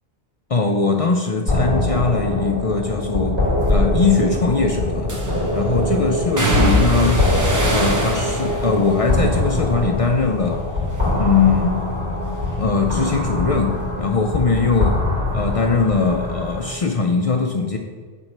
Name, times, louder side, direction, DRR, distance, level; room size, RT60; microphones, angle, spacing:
voice 1, 0.5-3.4 3.7-5.2 5.5-7.3 7.7-10.7 11.2-11.9 12.6-15.0 15.3-17.8, left 4 dB, 60° left, 3 dB, 0.3 m, -20 dB
sound 1, 1.5-16.7, left 1 dB, 50° right, 1.7 m, -23 dB
sound 2, 3.6-3.9 5.1-5.6 6.4-10.6 10.9-11.5 11.9-15.2 15.5-16.6 16.9-17.0, equal, 25° right, 0.5 m, -24 dB
6.9 x 3.0 x 5.3 m, 1.5 s
omnidirectional pair, 1.1 m